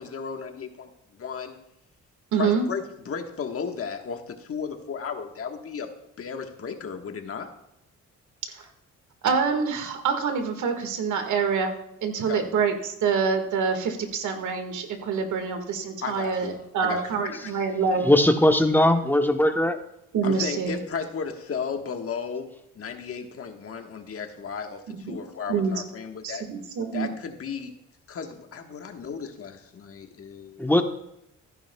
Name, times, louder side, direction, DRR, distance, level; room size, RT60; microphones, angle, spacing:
voice 1, 0.0-1.6 2.4-5.9 6.2-7.5 12.3-12.4 16.0-17.6 20.2-22.5 22.7-26.5 26.9-27.7 28.1-30.7, left 6 dB, 50° left, 5 dB, 1.4 m, -34 dB
voice 2, 2.3-2.6 8.6-8.7 9.2-11.7 12.0-18.1 20.1-20.8 24.9-25.2 25.5-25.7 26.2-27.1, right 5 dB, 75° right, 6 dB, 1.8 m, -26 dB
voice 3, 18.0-19.8 30.6-30.8, left 1 dB, 5° left, 6 dB, 1.0 m, -19 dB
15.0 x 10.0 x 2.3 m, 0.82 s
cardioid pair, 90°, 30 cm